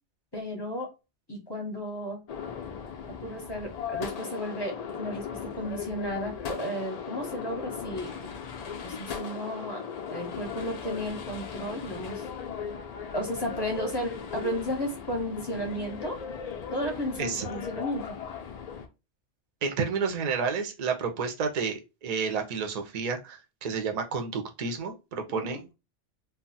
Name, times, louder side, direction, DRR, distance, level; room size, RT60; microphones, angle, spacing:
voice 1, 0.3-0.9 1.3-2.2 3.2-8.1 8.8-9.8 10.1-12.5 13.1-16.2 16.7-18.2 25.3-25.6, equal, 25° left, 0 dB, 0.6 m, -34 dB
sound 1, 2.3-18.9, left 7 dB, 80° left, 0.3 m, -38 dB
voice 2, 19.6-25.7, right 5 dB, 50° right, 4 dB, 0.5 m, -30 dB
2.3 x 2.0 x 3.8 m, 0.27 s
omnidirectional pair, 1.2 m